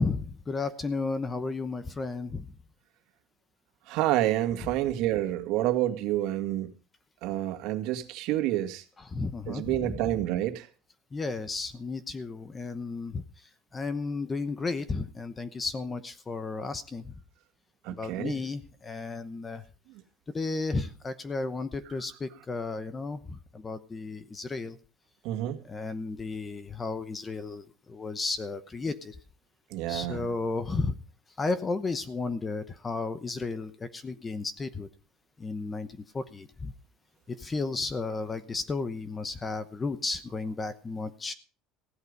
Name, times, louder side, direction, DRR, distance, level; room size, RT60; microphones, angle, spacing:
voice 1, 0.0-2.5 9.0-10.0 11.1-17.1 17.9-19.6 20.3-24.8 25.6-29.2 29.9-31.0 31.4-34.9 35.4-36.7 37.3-41.3, left 3 dB, 15° left, 13 dB, 0.9 m, -33 dB
voice 2, 3.9-6.7 7.2-8.8 9.5-10.7 17.8-18.3 25.2-25.6 29.7-30.3, right 14 dB, 60° right, 7 dB, 2.0 m, -28 dB
16.0 x 11.5 x 5.3 m, 0.36 s
cardioid pair, 165°, 0 cm